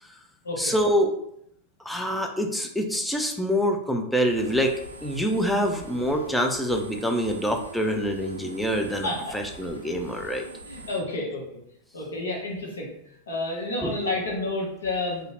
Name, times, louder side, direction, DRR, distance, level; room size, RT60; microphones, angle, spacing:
voice 1, 0.6-1.1 1.8-10.5 13.8-14.0, equal, 5° left, 2 dB, 0.4 m, -26 dB
sound 1, 4.3-11.0, right 1 dB, 90° right, 0.4 m, -44 dB
voice 2, 9.0-9.4 10.7-11.4 11.9-12.9 13.3-15.3, left 2 dB, 70° left, -2 dB, 0.7 m, -30 dB
2.7 x 2.1 x 2.8 m, 0.74 s
figure-of-eight pair, 90°, 0 cm